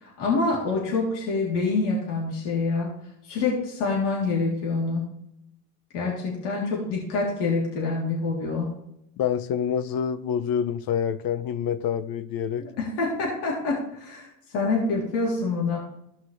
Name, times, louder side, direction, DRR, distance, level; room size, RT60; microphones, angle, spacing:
voice 1, 0.0-2.9 3.2-5.1 5.9-8.7 12.8-14.3 14.5-15.8, left 3 dB, 65° left, 3.6 m, -26 dB
voice 2, 9.2-12.6, left 8 dB, 50° left, 0.9 m, -27 dB
15.5 x 5.8 x 3.4 m
hypercardioid pair, 80°, 46 cm